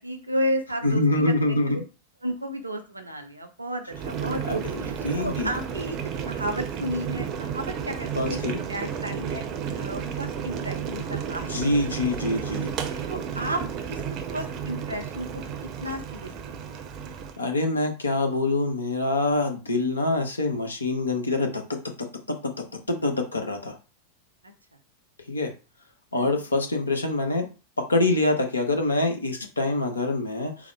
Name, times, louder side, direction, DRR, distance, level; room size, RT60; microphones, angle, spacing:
voice 1, 0.0-1.8 2.2-6.0 6.3-8.4 8.7-11.7 13.1-13.6 13.9-14.0 14.3-16.6 26.1-26.5, equal, 85° right, 5 dB, 0.7 m, -33 dB
voice 2, 0.8-1.8 4.5-4.6 5.0-5.5 8.2-8.6 11.5-12.7 17.4-22.5 22.9-23.7 25.3-25.5 26.1-27.5 27.9-30.7, left 2 dB, 75° left, 3 dB, 0.9 m, -25 dB
Boiling, 3.9-17.4, right 7 dB, 35° right, 0.6 m, -32 dB
4.0 x 2.1 x 4.4 m, 0.32 s
figure-of-eight pair, 90°, 0 cm